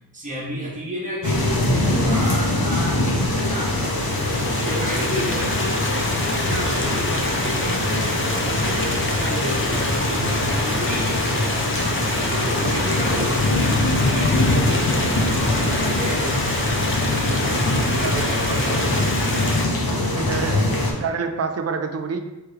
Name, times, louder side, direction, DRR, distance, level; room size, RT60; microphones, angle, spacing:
voice 1, 0.1-3.9 4.2-5.8 6.3-11.4 12.3-13.5 13.9-16.4 17.9-19.1, equal, 20° right, -4 dB, 0.9 m, -31 dB
sound 1, 1.2-20.9, left 1 dB, 65° left, 0.8 m, -23 dB
Stream, 3.3-19.7, left 2 dB, 30° left, 0.5 m, -28 dB
sound 2, 6.6-18.4, right 2 dB, 85° right, 0.7 m, -38 dB
voice 2, 18.0-19.1 20.1-22.2, right 5 dB, 40° right, 7 dB, 0.4 m, -28 dB
3.5 x 3.3 x 3.2 m, 1.0 s
wide cardioid pair, 55°, 39 cm